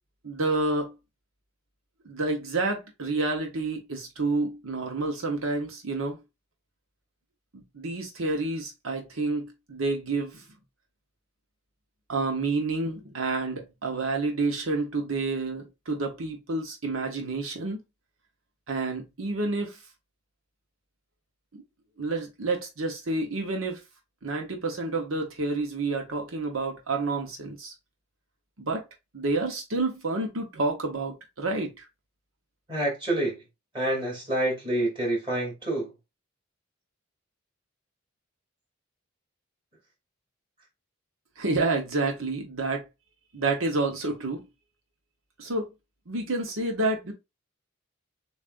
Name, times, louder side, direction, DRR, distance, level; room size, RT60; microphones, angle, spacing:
voice 1, 0.2-0.9 2.0-6.2 7.5-10.4 12.1-17.8 18.7-19.8 21.5-21.6 22.0-23.8 24.2-27.7 28.6-28.9 29.1-31.9 41.4-42.9 43.3-44.4 45.4-45.7 46.1-47.1, right 3 dB, 85° right, 1.1 m, -29 dB
voice 2, 32.7-33.4 33.7-35.9, right 1 dB, 25° right, 2.8 m, -27 dB
7.2 x 2.6 x 2.5 m
head